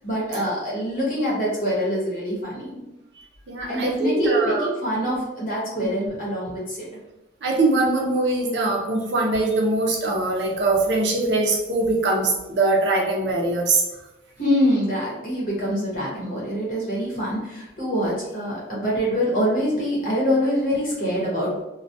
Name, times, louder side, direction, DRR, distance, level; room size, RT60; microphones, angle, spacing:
voice 1, 0.0-2.8 3.7-7.0 14.4-21.5, equal, 50° left, -5 dB, 0.9 m, -25 dB
voice 2, 3.5-4.7 5.8-5.9 7.4-13.8, right 2 dB, 75° right, 0 dB, 0.5 m, -22 dB
2.2 x 2.2 x 2.6 m, 0.97 s
head